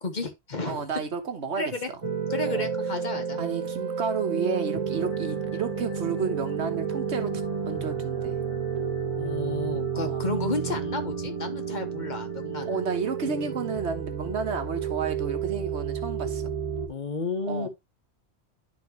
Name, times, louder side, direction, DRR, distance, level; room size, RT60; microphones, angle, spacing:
voice 1, 0.0-0.8 1.6-1.9 2.3-3.4 9.2-12.8 16.9-17.7, left 3 dB, 45° left, 1.3 m, -32 dB
voice 2, 0.7-2.0 2.5-2.7 3.4-7.3 7.7-8.4 9.9-10.2 12.6-16.5 17.5-17.7, right 5 dB, 90° right, 1.5 m, -31 dB
sound 1, 2.0-16.9, right 7 dB, 30° right, 1.1 m, -31 dB
sound 2, 4.9-13.3, left 4 dB, 80° left, 1.8 m, -46 dB
11.5 x 4.3 x 3.0 m
omnidirectional pair, 1.1 m